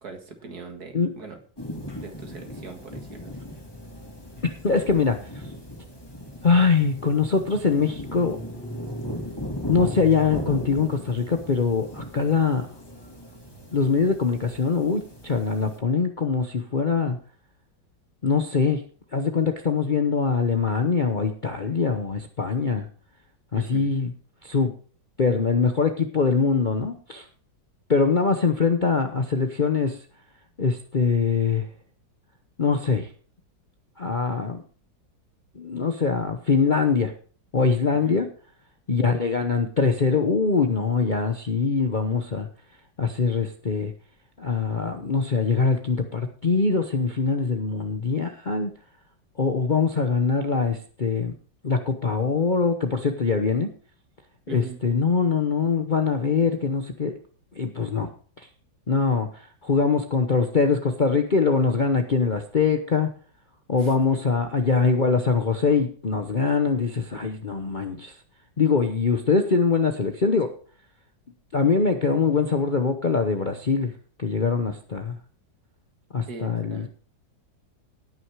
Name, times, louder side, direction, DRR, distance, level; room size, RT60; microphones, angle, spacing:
voice 1, 0.0-1.4 2.0-3.4 23.5-23.9 37.9-38.3 54.5-54.8 63.8-64.0 76.3-76.9, right 4 dB, 55° right, 4 dB, 2.3 m, -41 dB
sound 1, 1.6-15.8, equal, 15° left, 2.2 m, -37 dB
voice 2, 4.4-5.2 6.4-8.4 9.7-12.7 13.7-17.2 18.2-18.8 19.1-22.9 23.5-24.1 24.4-24.7 25.2-27.3 27.9-30.0 30.6-31.7 32.6-33.1 34.0-34.6 35.5-37.1 37.5-38.3 38.9-42.5 43.0-43.9 44.4-48.7 49.4-51.3 51.6-53.7 54.5-57.1 57.6-58.1 58.4-58.5 58.9-63.1 63.7-68.1 68.6-70.5 71.5-73.9 74.2-75.2 76.1-76.9, left 5 dB, 40° left, 5 dB, 0.7 m, -23 dB
18.0 x 6.3 x 4.8 m, 0.43 s
omnidirectional pair, 2.0 m